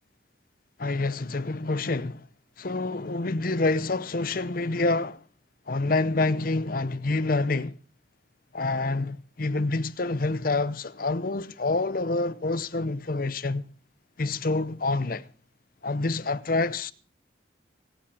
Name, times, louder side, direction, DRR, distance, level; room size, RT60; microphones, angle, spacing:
voice 1, 0.8-2.3 2.6-5.2 5.7-7.7 8.5-13.6 14.2-15.3 15.8-16.9, left 3 dB, 50° left, 0.7 m, -27 dB
24.5 x 8.8 x 4.8 m
head